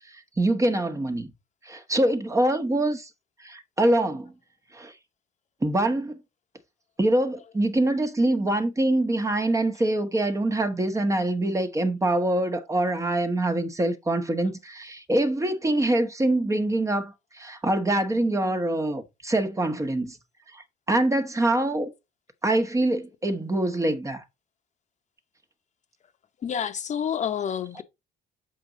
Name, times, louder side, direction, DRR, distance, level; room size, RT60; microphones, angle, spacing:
voice 1, 0.4-1.3 1.6-3.1 3.4-4.3 4.7-4.9 5.6-6.2 7.0-20.2 20.5-21.9 22.4-24.2 27.7-27.8, right 1 dB, 20° right, 1.2 m, -24 dB
voice 2, 26.4-27.8, left 8 dB, 45° left, 1.0 m, -28 dB
7.5 x 4.6 x 3.9 m
cardioid pair, 110°, 17 cm